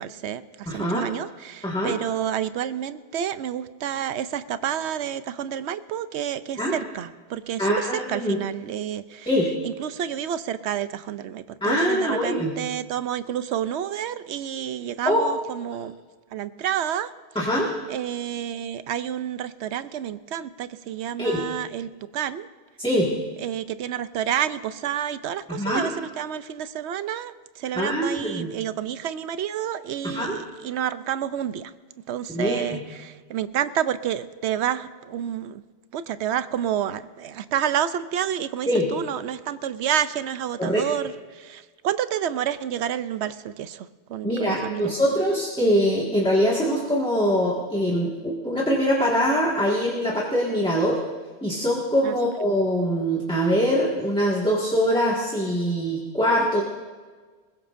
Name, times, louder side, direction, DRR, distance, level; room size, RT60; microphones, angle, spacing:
voice 1, 0.0-9.3 9.6-16.0 16.3-17.1 17.9-22.5 23.4-31.7 32.1-35.6 35.9-44.9 52.0-52.1, right 10 dB, 80° right, 13 dB, 0.9 m, -29 dB
voice 2, 0.6-1.1 1.6-2.0 6.6-6.7 7.6-8.4 9.3-9.5 11.6-12.5 15.0-15.2 17.3-17.7 21.2-21.4 22.8-23.1 25.5-25.9 27.7-28.5 30.0-30.4 32.3-32.8 38.7-38.8 40.6-40.8 44.2-51.0 51.4-56.6, equal, 5° left, -4 dB, 1.8 m, -23 dB
21.0 x 21.0 x 2.6 m, 1.4 s
omnidirectional pair, 1.1 m